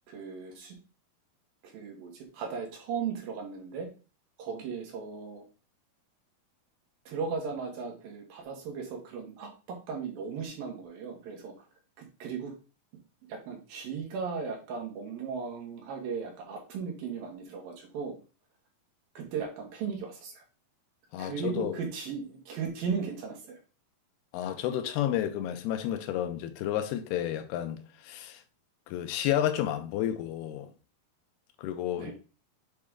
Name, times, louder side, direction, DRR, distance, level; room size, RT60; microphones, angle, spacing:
voice 1, 0.1-0.8 1.6-3.9 4.4-5.4 7.1-11.5 12.2-12.5 13.3-18.2 19.1-20.4 21.2-23.6 32.0-32.1, right 5 dB, 70° right, 3.2 m, -36 dB
voice 2, 21.1-21.8 24.3-28.4 28.9-30.7 31.6-32.1, left 11 dB, 85° left, 2.7 m, -31 dB
7.7 x 4.3 x 3.7 m
omnidirectional pair, 4.4 m